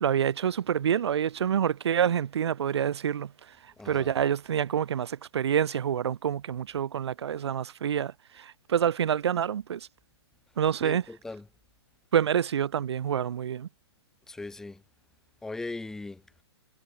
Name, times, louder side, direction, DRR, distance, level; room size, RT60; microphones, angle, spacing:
voice 1, 0.0-3.3 3.8-9.9 10.6-11.0 12.1-13.7, right 9 dB, 70° right, 0.9 m, -27 dB
voice 2, 3.8-4.1 10.8-11.5 14.3-14.8 15.4-16.2, left 3 dB, 5° left, 0.5 m, -39 dB
hypercardioid pair, 140°, 14 cm